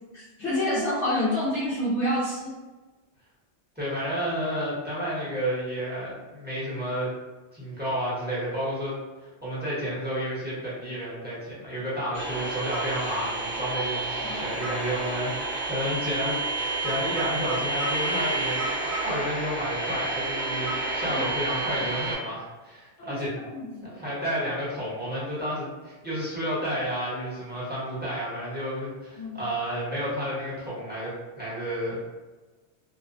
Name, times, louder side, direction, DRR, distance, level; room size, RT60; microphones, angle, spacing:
voice 1, 0.1-2.5 14.2-14.5 21.1-21.2 23.0-23.2 23.5-24.0 29.2-29.4, left 1 dB, 85° left, -9 dB, 0.9 m, -28 dB
voice 2, 3.8-7.1 7.5-23.3 23.8-32.0, equal, 10° right, -10 dB, 0.7 m, -31 dB
sound 1, 12.1-22.2, right 2 dB, 55° right, 0.9 m, -30 dB
2.5 x 2.1 x 2.5 m, 1.2 s
omnidirectional pair, 1.1 m